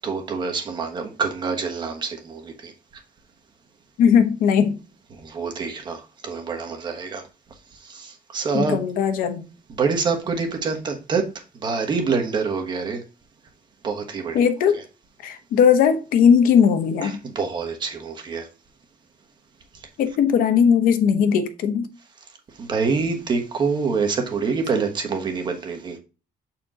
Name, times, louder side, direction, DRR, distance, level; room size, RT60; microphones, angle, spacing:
voice 1, 0.0-2.7 5.2-7.2 7.8-8.8 9.7-11.3 11.5-13.0 13.8-14.4 17.0-18.5 22.6-26.0, right 5 dB, 30° right, 1.1 m, -26 dB
voice 2, 4.0-4.8 8.5-9.4 14.3-14.8 15.2-17.2 20.0-21.9, left 7 dB, 70° left, 1.0 m, -18 dB
7.5 x 4.4 x 3.7 m
cardioid pair, 180°, 15 cm